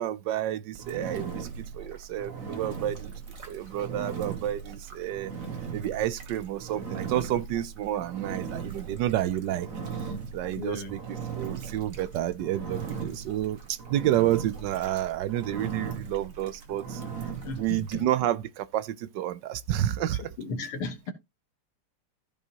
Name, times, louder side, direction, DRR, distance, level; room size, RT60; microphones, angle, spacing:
voice 1, 0.0-3.1 3.4-5.3 5.7-9.7 10.3-17.0 17.5-20.3, right 12 dB, 70° right, 1.1 m, -30 dB
Engine, 0.7-18.0, right 6 dB, 40° right, 1.8 m, -38 dB
voice 2, 10.6-10.9 17.5-18.0 20.4-21.1, left 3 dB, 80° left, 2.4 m, -35 dB
14.5 x 5.3 x 2.9 m
omnidirectional pair, 2.4 m